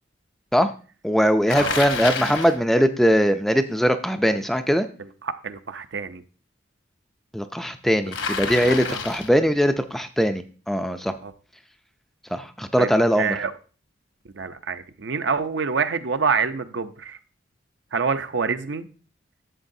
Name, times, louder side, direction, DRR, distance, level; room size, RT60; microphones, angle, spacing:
voice 1, 1.0-4.9 7.3-11.1 12.3-13.4, equal, ahead, 8 dB, 0.3 m, -21 dB
Bicycle, 1.5-2.6 8.1-9.4, left 5 dB, 70° left, 1.0 m, -29 dB
voice 2, 5.0-6.2 8.9-9.0 11.2-11.3 12.8-12.9 13.2-13.5 14.3-17.2 17.9-18.9, right 5 dB, 65° right, 10 dB, 0.6 m, -26 dB
11.0 x 7.5 x 2.7 m, 0.39 s
head